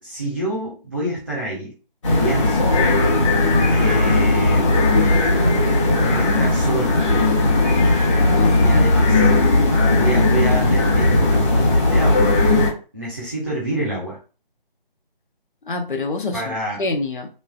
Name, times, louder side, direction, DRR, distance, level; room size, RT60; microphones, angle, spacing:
voice 1, 0.0-1.7 2.2-2.7 3.7-5.0 6.0-7.0 8.6-9.3 9.9-12.4 12.9-14.2 16.3-16.8, right 1 dB, 20° right, -8 dB, 0.5 m, -28 dB
sound 1, 2.0-12.7, left 2 dB, 30° left, 1.1 m, -17 dB
voice 2, 8.4-8.9 15.7-17.3, left 3 dB, 60° left, 4 dB, 0.6 m, -26 dB
3.1 x 2.2 x 2.3 m, 0.35 s
figure-of-eight pair, 160°, 29 cm